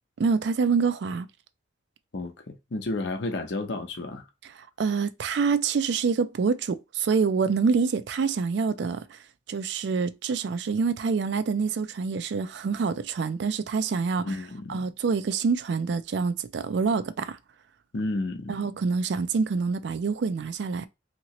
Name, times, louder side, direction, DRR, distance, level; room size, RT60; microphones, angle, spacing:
voice 1, 0.2-1.3 4.4-9.2 9.5-14.4 14.7-17.4 18.5-20.9, right 5 dB, 60° right, 0.4 m, -26 dB
voice 2, 2.1-4.2 14.2-14.8 17.9-18.6, left 2 dB, 65° left, 0.7 m, -32 dB
2.9 x 2.8 x 2.8 m
head